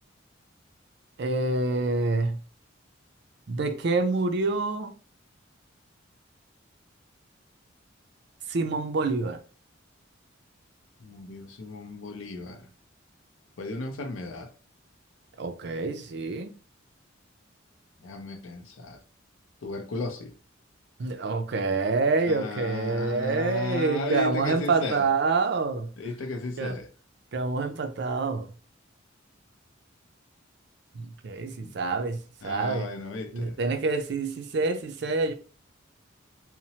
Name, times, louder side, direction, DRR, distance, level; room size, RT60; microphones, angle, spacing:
voice 1, 1.2-2.4 3.5-4.9 8.5-9.4 15.4-16.5 21.0-25.9 26.6-26.8 27.3-28.5 30.9-32.9 33.3-35.3, right 3 dB, 55° right, 0.4 m, -27 dB
voice 2, 11.0-12.7 13.6-14.5 18.0-19.0 19.6-20.3 22.3-25.1 26.0-26.9 31.6-31.7 32.4-33.6, left 3 dB, 75° left, 0.5 m, -35 dB
2.9 x 2.0 x 2.8 m
head